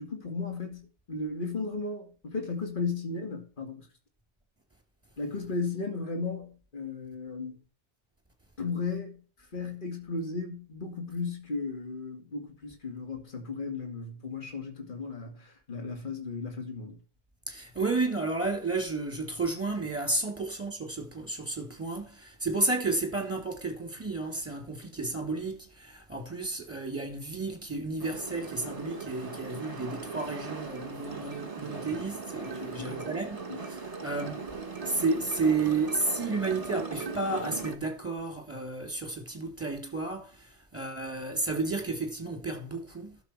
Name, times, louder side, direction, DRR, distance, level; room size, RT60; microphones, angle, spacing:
voice 1, 0.0-3.9 5.2-7.6 8.6-9.2 9.5-17.0 32.6-33.0 33.5-33.6, left 4 dB, 45° left, 2.4 m, -35 dB
voice 2, 17.5-34.5 34.8-43.2, right 3 dB, 10° right, 3.4 m, -32 dB
sound 1, 28.0-37.8, right 4 dB, 30° right, 1.6 m, -39 dB
11.5 x 7.0 x 4.6 m
omnidirectional pair, 1.2 m